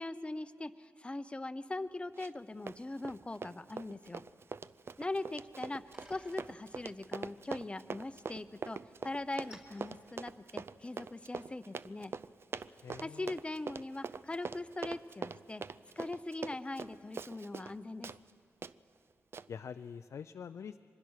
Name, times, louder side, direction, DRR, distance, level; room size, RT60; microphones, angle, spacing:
voice 1, 0.0-4.2 5.0-5.8 6.1-8.8 9.0-12.1 13.0-15.6 16.0-18.1, left 2 dB, 20° left, 12 dB, 0.7 m, -41 dB
Run, 2.2-2.4 2.7-17.7 18.0-18.2 18.6-18.7 19.3-19.5, right 5 dB, 50° right, 0.4 m, -43 dB
Bicycle, 5.5-11.0, equal, 20° right, 4.1 m, -62 dB
voice 2, 12.8-13.4 19.5-20.8, left 7 dB, 70° left, 8 dB, 0.4 m, -45 dB
24.0 x 21.0 x 6.4 m, 2.4 s
cardioid pair, 65°, 5 cm